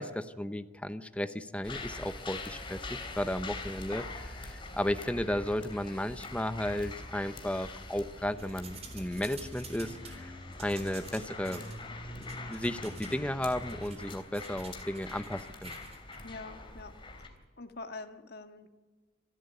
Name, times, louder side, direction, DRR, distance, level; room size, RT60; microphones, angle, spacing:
voice 1, 0.0-10.3 10.6-11.6 12.2-15.7, left 1 dB, 5° left, 11 dB, 0.7 m, -34 dB
sound 1, 1.6-17.3, left 2 dB, 25° left, 3.2 m, -43 dB
sound 2, 8.3-10.2 10.5-11.8 12.2-13.2 13.4-16.2, right 5 dB, 35° right, 3.7 m, -50 dB
voice 2, 16.2-16.9 17.6-18.7, left 3 dB, 55° left, 7 dB, 1.7 m, -44 dB
26.5 x 13.5 x 8.4 m, 1.4 s
head